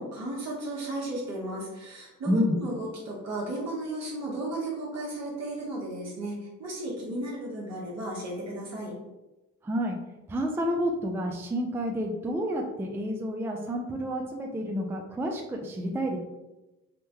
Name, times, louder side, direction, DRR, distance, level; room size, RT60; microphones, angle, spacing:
voice 1, 0.0-8.9, right 1 dB, 60° right, -5 dB, 1.1 m, -34 dB
voice 2, 2.3-2.6 9.6-10.0 10.3-16.2, equal, 10° right, 2 dB, 0.3 m, -29 dB
3.6 x 2.1 x 2.9 m, 1.0 s
cardioid pair, 90°, 30 cm